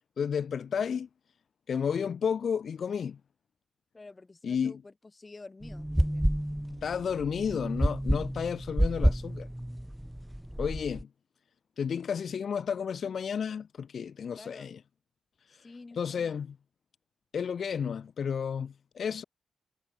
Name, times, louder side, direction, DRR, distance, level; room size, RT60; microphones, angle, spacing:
voice 1, 0.2-1.1 1.7-3.2 4.4-4.7 6.8-9.5 10.6-11.1 11.8-14.8 15.5-15.7 16.0-16.6 17.3-19.2, left 7 dB, 65° left, 1.1 m, -32 dB
voice 2, 3.9-6.4 14.3-14.7 15.6-16.4, left 3 dB, 30° left, 7.3 m, -50 dB
sound 1, 5.6-11.0, equal, 5° right, 0.4 m, -30 dB
cardioid pair, 70°, 0 cm